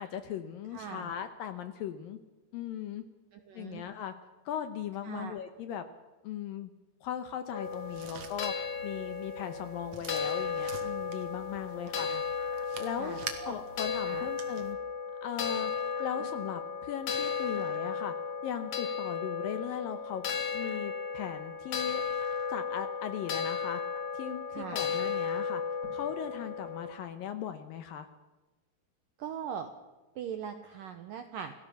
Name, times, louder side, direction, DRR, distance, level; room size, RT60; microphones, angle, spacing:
voice 1, 0.0-2.2 2.5-3.0 3.5-4.1 4.5-5.8 6.2-6.7 7.0-8.5 8.8-12.1 12.8-13.2 13.4-14.8 15.2-15.7 16.0-18.1 18.4-20.2 20.5-22.0 22.5-23.8 24.1-25.6 25.9-28.1, left 9 dB, 75° left, 9 dB, 2.1 m, -38 dB
voice 2, 0.7-1.1 3.3-3.8 5.0-5.4 11.9-12.2 13.0-13.6 14.1-14.3 16.1-16.3 24.5-24.9 29.2-29.7 30.2-31.5, right 8 dB, 70° right, 8 dB, 2.1 m, -41 dB
sound 1, 7.5-26.9, left 6 dB, 50° left, 2.8 m, -35 dB
sound 2, 7.6-14.7, right 6 dB, 50° right, 2.1 m, -47 dB
27.0 x 17.0 x 7.1 m, 1.2 s
omnidirectional pair, 5.2 m